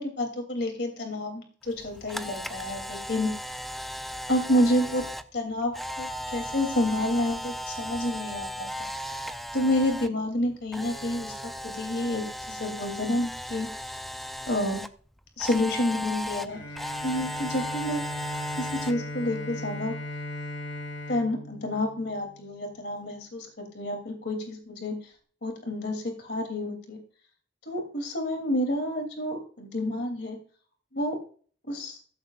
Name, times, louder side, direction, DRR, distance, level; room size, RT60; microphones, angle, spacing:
voice 1, 0.0-3.3 4.3-5.0 5.3-8.9 9.5-11.3 11.6-13.7 14.5-14.8 15.4-16.6 17.0-18.1 18.6-19.9 21.1-23.5 23.7-24.9 25.4-27.0 27.7-30.4 30.9-31.2 31.7-32.0, left 1 dB, 65° left, 3 dB, 2.9 m, -29 dB
Camera, 1.7-10.1 10.4-14.9 15.4-18.9, equal, ahead, 0.5 m, -36 dB
Bowed string instrument, 16.5-22.5, left 1 dB, 85° left, 4.3 m, -37 dB
15.0 x 13.5 x 2.4 m, 0.43 s
head